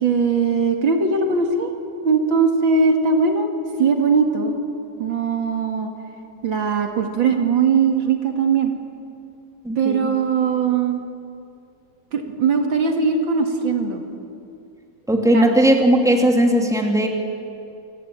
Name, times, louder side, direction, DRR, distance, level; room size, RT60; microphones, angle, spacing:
voice 1, 0.0-1.7 2.0-3.5 3.8-4.6 5.0-5.9 6.4-8.7 9.8-11.0 12.1-14.0 15.3-15.4, right 5 dB, 80° right, 4 dB, 2.9 m, -20 dB
voice 2, 9.6-10.1 15.1-17.1, right 1 dB, ahead, 2 dB, 2.8 m, -17 dB
28.5 x 21.0 x 9.0 m, 2.6 s
omnidirectional pair, 2.1 m